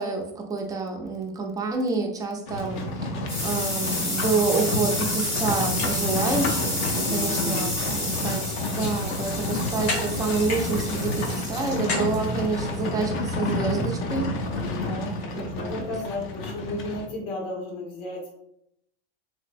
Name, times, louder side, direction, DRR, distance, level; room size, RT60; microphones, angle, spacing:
voice 1, 0.0-14.3 15.4-15.9, right 4 dB, 10° right, 2 dB, 0.3 m, -28 dB
Livestock farm animals working animals, 2.5-17.0, left 2 dB, 40° left, 0.6 m, -30 dB
sound 1, 2.6-13.8, left 2 dB, 20° left, 1.2 m, -31 dB
sound 2, 4.0-4.1 4.6-4.7 5.1-9.0 9.4-10.7 10.9-13.1, left 3 dB, 90° left, 1.4 m, -36 dB
voice 2, 7.1-8.2 14.6-18.3, left 2 dB, 70° left, -1 dB, 1.4 m, -34 dB
3.3 x 3.0 x 2.5 m, 0.77 s
supercardioid pair, 140°, 31 cm